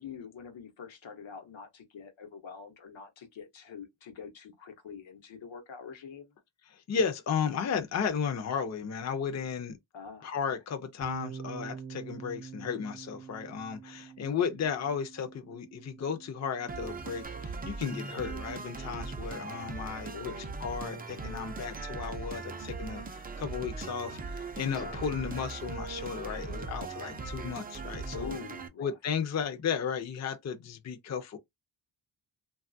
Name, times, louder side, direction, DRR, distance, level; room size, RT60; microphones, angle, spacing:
voice 1, 0.0-6.3 9.9-10.6 20.1-20.5 24.7-25.0 28.1-29.0, left 6 dB, 85° left, 0.9 m, -45 dB
voice 2, 6.7-9.8 10.2-20.3 20.6-28.3 28.8-31.4, left 6 dB, 40° left, 0.5 m, -34 dB
Bass guitar, 11.0-17.3, right 5 dB, 60° right, 0.7 m, -45 dB
sound 1, 16.7-28.7, right 4 dB, 20° right, 0.3 m, -39 dB
3.0 x 2.3 x 2.5 m
wide cardioid pair, 135°, 45 cm